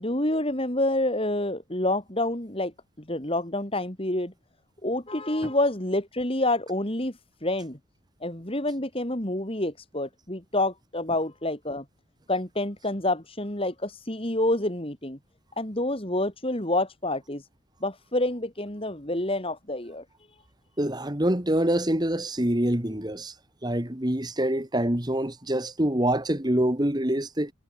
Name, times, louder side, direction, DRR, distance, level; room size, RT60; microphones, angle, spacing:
voice 1, 0.0-2.7 3.0-4.3 4.8-7.8 8.2-11.8 12.3-15.2 15.6-17.5 17.8-20.0, left 1 dB, 25° left, 2.9 m, -28 dB
voice 2, 20.8-23.3 23.6-27.5, right 1 dB, 20° right, 1.8 m, -25 dB
head